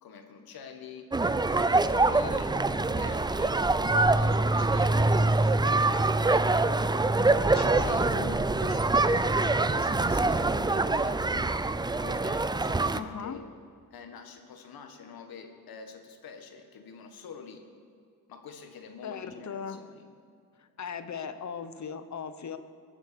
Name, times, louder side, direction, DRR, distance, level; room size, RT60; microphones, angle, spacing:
voice 1, 0.0-1.1 1.5-3.6 3.9-6.7 7.7-8.1 8.4-11.5 12.0-13.4 13.9-17.6 18.3-20.1, left 6 dB, 85° left, 6 dB, 1.7 m, -46 dB
sound 1, 1.1-13.0, right 2 dB, 10° right, 0.4 m, -25 dB
voice 2, 7.5-8.4 12.9-13.4 19.0-19.8 20.6-22.6, left 6 dB, 50° left, 11 dB, 1.0 m, -38 dB
22.5 x 7.8 x 6.9 m, 2.3 s
cardioid pair, 105°, 35 cm